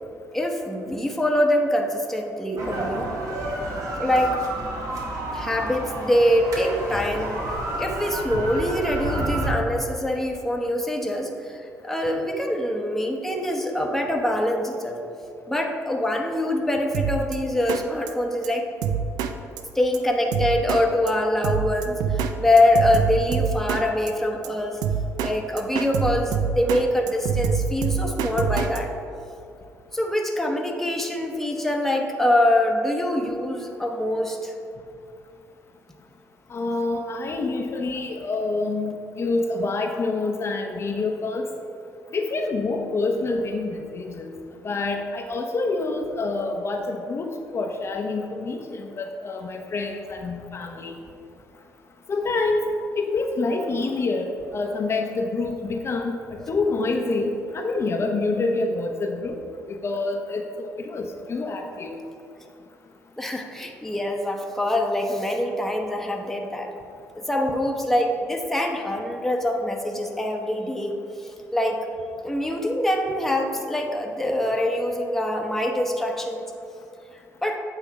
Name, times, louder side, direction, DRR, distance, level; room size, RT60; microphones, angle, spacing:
voice 1, 0.3-3.1 4.0-4.4 5.3-7.4 7.8-15.0 15.5-18.7 19.7-24.8 25.2-28.9 29.9-34.5 56.4-56.5 63.2-66.7 67.1-71.8 72.2-76.5 77.4-77.6, left 1 dB, 5° left, 1 dB, 0.9 m, -24 dB
sound 1, 2.6-9.5, right 1 dB, 65° right, 1.4 m, -30 dB
Drum kit, 16.9-17.4 17.7-17.8 18.1-18.2 18.4-18.5 18.8-19.3 19.6-19.7 19.9-20.0 20.3-20.8 21.1-21.2 21.4-22.3 22.6-23.8 24.1-24.2 24.4-24.5 24.8-25.3 25.6-26.8 27.1-28.8, right 7 dB, 85° right, 0.4 m, -25 dB
voice 2, 36.5-41.4 42.1-44.3 44.6-50.9 52.1-52.6 53.0-59.4 59.7-61.9, left 3 dB, 40° left, 2 dB, 0.7 m, -27 dB
8.1 x 3.4 x 5.8 m, 2.5 s
cardioid pair, 80°, 6 cm